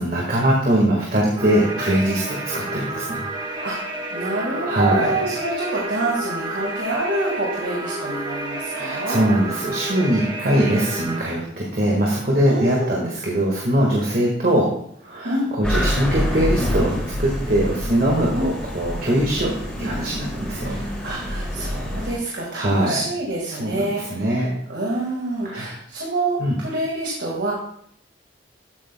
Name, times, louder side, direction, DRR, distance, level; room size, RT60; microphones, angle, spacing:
voice 1, 0.0-3.3 4.6-5.1 8.7-14.7 15.0-16.9 17.2-19.5 19.8-20.8 22.5-23.0 23.6-24.6 25.4-25.7 26.4-26.5, right 1 dB, 50° right, -3 dB, 1.7 m, -21 dB
sound 1, 1.4-11.2, right 2 dB, 25° right, 1.2 m, -30 dB
voice 2, 3.6-9.3 12.4-13.0 15.2-15.5 18.3-18.5 20.7-27.5, right 2 dB, 70° right, -3 dB, 1.9 m, -27 dB
sound 2, 15.6-22.1, equal, 5° left, 2.5 m, -27 dB
13.0 x 8.5 x 2.3 m, 0.67 s
head